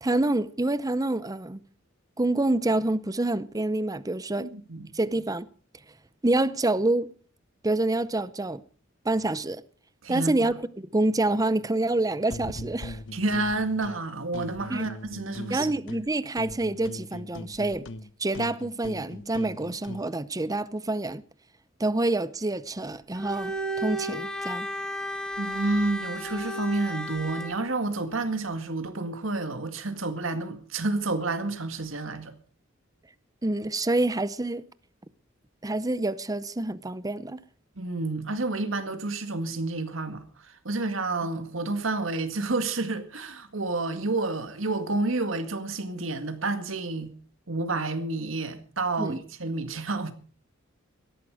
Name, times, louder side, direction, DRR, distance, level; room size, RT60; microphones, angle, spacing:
voice 1, 0.0-1.6 2.2-4.5 4.9-5.5 6.2-7.1 7.6-8.6 9.0-9.6 10.1-13.0 14.7-14.9 15.5-17.9 18.2-21.2 21.8-24.7 33.4-34.6 35.6-37.4 49.0-49.2, right 2 dB, 20° right, 0.7 m, -27 dB
voice 2, 4.4-4.9 10.0-10.5 13.1-15.7 25.4-32.3 37.8-47.1 47.5-50.1, right 2 dB, 75° right, 2.0 m, -30 dB
sound 1, 12.3-14.0 14.3-16.1 16.4-20.1, left 1 dB, 65° left, 1.0 m, -40 dB
Bowed string instrument, 23.1-27.6, equal, 5° left, 1.7 m, -33 dB
18.0 x 13.5 x 4.8 m
head